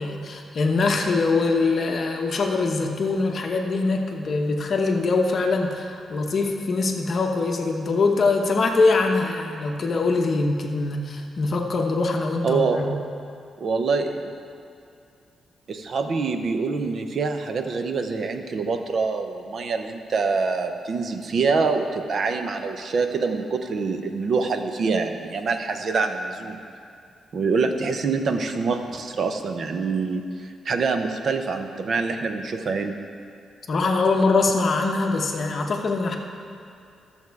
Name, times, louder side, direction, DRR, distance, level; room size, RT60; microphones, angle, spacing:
voice 1, 0.0-12.9 33.7-36.2, left 3 dB, 40° left, 2 dB, 0.9 m, -23 dB
voice 2, 12.4-13.0 13.6-14.3 15.7-26.6 27.3-30.2 30.6-33.0, right 4 dB, 45° right, 6 dB, 0.7 m, -25 dB
13.0 x 7.1 x 4.7 m, 2.4 s
wide cardioid pair, 160°, 0 cm